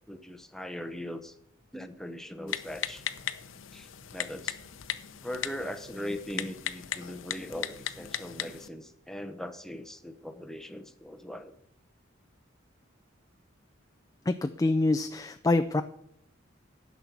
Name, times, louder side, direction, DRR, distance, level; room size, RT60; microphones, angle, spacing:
voice 1, 0.1-1.4 1.7-3.0 3.7-4.6 5.2-11.5, left 1 dB, ahead, 8 dB, 0.8 m, -40 dB
Typing, 2.5-8.7, left 10 dB, 90° left, 0.7 m, -37 dB
voice 2, 14.3-15.8, left 2 dB, 20° left, 9 dB, 0.4 m, -26 dB
11.0 x 6.1 x 8.1 m, 0.72 s
head